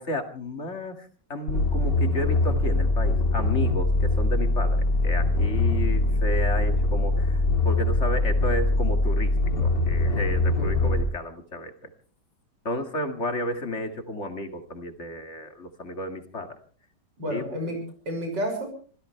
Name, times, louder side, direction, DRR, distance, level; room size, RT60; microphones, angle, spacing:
voice 1, 0.0-9.4 9.6-11.9 12.6-16.6 17.3-17.5, left 1 dB, 40° left, 6 dB, 2.4 m, -32 dB
sound 1, 1.5-11.0, left 2 dB, 80° left, 2.9 m, -23 dB
voice 2, 10.5-10.9 17.2-18.7, equal, 80° right, 3 dB, 7.1 m, -31 dB
26.5 x 16.0 x 3.4 m, 0.42 s
omnidirectional pair, 1.9 m